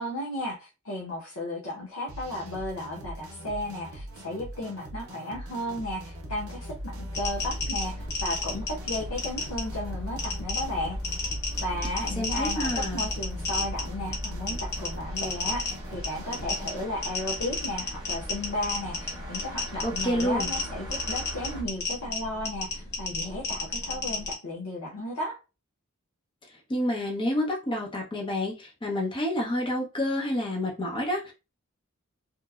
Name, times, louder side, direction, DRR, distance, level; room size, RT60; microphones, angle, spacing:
voice 1, 0.0-11.0 11.6-25.4, left 1 dB, 90° left, 0.7 m, -34 dB
sound 1, 2.1-16.9, right 1 dB, 90° right, 0.6 m, -42 dB
sound 2, 5.6-21.6, left 1 dB, 20° right, 0.7 m, -39 dB
sound 3, 7.1-24.3, left 3 dB, 50° left, 1.0 m, -33 dB
voice 2, 12.2-13.1 19.8-20.5 26.7-31.3, left 1 dB, 25° left, 0.6 m, -29 dB
2.9 x 2.0 x 2.3 m
head